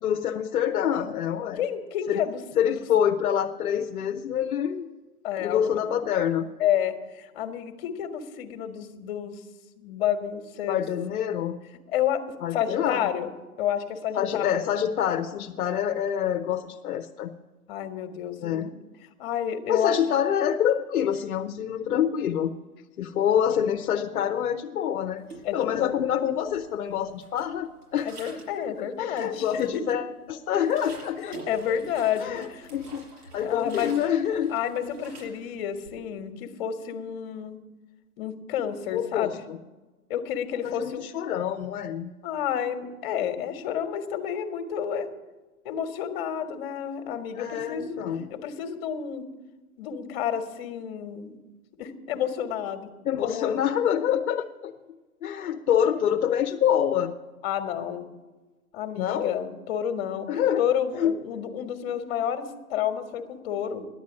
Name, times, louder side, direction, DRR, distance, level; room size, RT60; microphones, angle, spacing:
voice 1, 0.0-1.6 2.1-2.2 2.6-4.9 5.4-6.5 10.7-11.6 12.4-13.1 14.1-17.3 18.4-18.7 19.7-22.5 23.0-25.2 25.5-28.1 28.8-31.3 31.7-31.8 32.2-33.0 33.3-34.5 38.9-39.6 40.6-42.1 47.3-48.3 53.0-54.7 55.2-57.1 59.0-59.3 60.3-60.6 61.0-61.1, left 9 dB, 65° left, 4 dB, 0.9 m, -26 dB
voice 2, 1.6-2.4 2.7-2.8 5.2-5.7 6.6-9.4 9.8-10.8 11.9-12.2 12.5-13.3 13.6-14.7 17.7-18.7 19.2-20.0 25.4-25.9 28.0-29.7 30.5-30.7 31.3-32.7 33.4-33.9 34.5-37.6 38.2-39.4 40.1-41.1 42.2-45.1 45.6-48.0 48.3-49.2 49.8-51.4 51.8-52.9 53.2-53.6 57.4-58.1 58.7-60.3 60.6-63.9, left 9 dB, 40° left, 8 dB, 1.5 m, -30 dB
sound 1, 25.2-26.1 26.4-28.6 29.0-29.9 30.3-36.0, right 2 dB, 80° right, 5.5 m, -46 dB
10.5 x 8.3 x 9.7 m, 1.2 s
hypercardioid pair, 135°, 46 cm